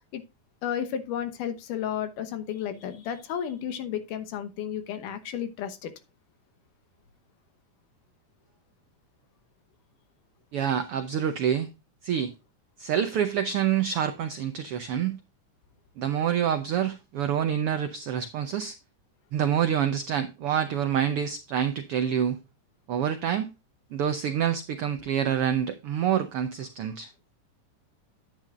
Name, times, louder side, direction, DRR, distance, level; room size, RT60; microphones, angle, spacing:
voice 1, 0.6-5.9, left 9 dB, 90° left, 2.6 m, -32 dB
voice 2, 10.5-11.7 12.0-12.3 12.8-15.2 16.0-18.7 19.3-22.4 22.9-23.5 23.9-27.1, right 9 dB, 80° right, 1.2 m, -27 dB
10.0 x 9.2 x 2.4 m
omnidirectional pair, 3.6 m